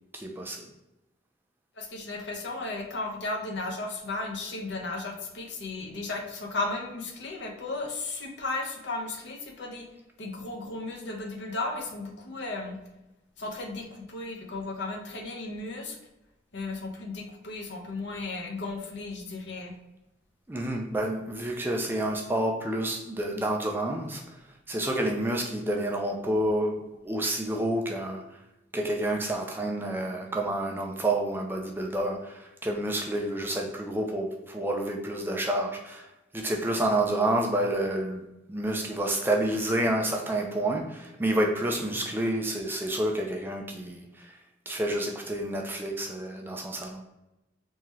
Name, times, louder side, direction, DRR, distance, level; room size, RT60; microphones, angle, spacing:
voice 1, 0.1-0.6 20.5-24.2 24.7-28.2 28.7-36.1 36.3-38.2 38.5-44.4 44.7-47.0, right 1 dB, 10° right, 1 dB, 0.4 m, -29 dB
voice 2, 1.8-9.9 10.2-12.8 13.4-16.0 16.5-19.7, left 2 dB, 70° left, 2 dB, 0.7 m, -35 dB
3.6 x 2.8 x 3.0 m, 0.97 s
head